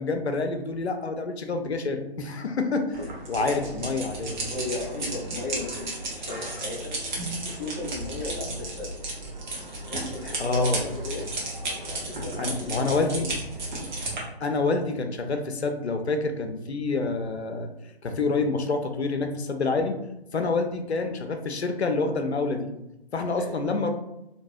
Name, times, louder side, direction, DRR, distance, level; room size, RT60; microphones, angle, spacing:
voice 1, 0.0-3.0 3.3-4.3 10.4-10.9 12.4-13.3 14.4-17.7 18.0-20.0 20.3-22.7 23.1-23.9, left 3 dB, 90° left, 5 dB, 0.5 m, -27 dB
sound 1, 2.9-14.2, right 2 dB, 45° right, 0.9 m, -33 dB
voice 2, 3.4-4.0 4.4-8.9 9.8-10.8 11.0-11.2 11.7-13.2 20.3-20.5 23.4-23.5, left 2 dB, 20° left, -5 dB, 0.5 m, -36 dB
2.7 x 2.2 x 2.6 m, 0.88 s
figure-of-eight pair, 145°, 32 cm